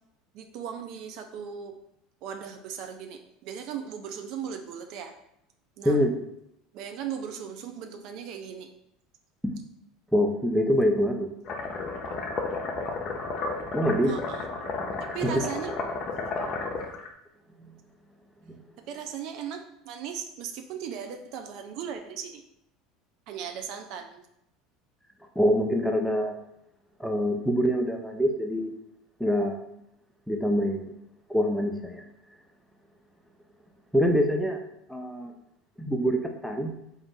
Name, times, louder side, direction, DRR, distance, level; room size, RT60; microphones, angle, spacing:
voice 1, 0.3-1.8 2.2-5.1 5.8-6.0 6.7-8.7 14.0-14.5 15.1-15.8 18.9-22.4 23.3-24.3, right 8 dB, 55° right, 5 dB, 0.4 m, -37 dB
voice 2, 10.1-11.3 13.7-14.1 15.2-15.3 25.4-26.4 27.0-28.7 29.2-29.6 30.3-30.9 31.3-32.0 33.9-34.6 34.9-35.3 35.8-36.7, equal, ahead, 2 dB, 0.6 m, -25 dB
sound 1, 11.5-17.1, left 3 dB, 45° left, 0.6 m, -32 dB
3.7 x 2.5 x 3.6 m, 0.79 s
hypercardioid pair, 75°, 0 cm